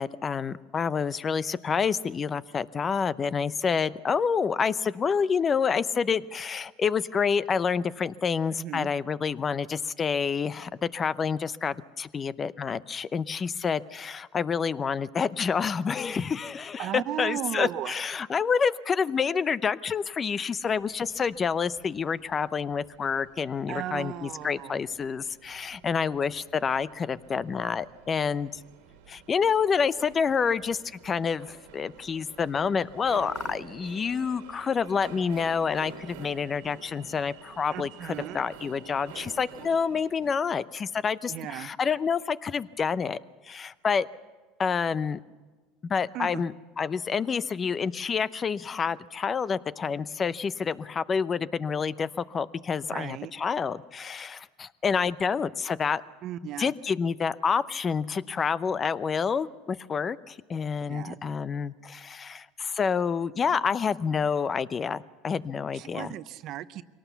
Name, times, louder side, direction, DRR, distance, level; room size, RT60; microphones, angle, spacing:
voice 1, 0.0-28.6 29.1-43.2 43.4-44.1 44.6-45.2 45.8-56.0 56.6-66.1, left 6 dB, 30° left, 17 dB, 0.7 m, -28 dB
voice 2, 8.6-8.9 16.8-17.9 23.7-24.8 37.7-38.4 41.3-41.7 46.1-46.4 52.9-53.4 56.2-56.7 60.9-61.2 65.7-66.8, right 12 dB, 55° right, 13 dB, 0.7 m, -36 dB
sound 1, 20.6-40.3, right 7 dB, 85° right, 2.0 m, -49 dB
23.0 x 18.0 x 6.9 m, 1.3 s
supercardioid pair, 100°, 0 cm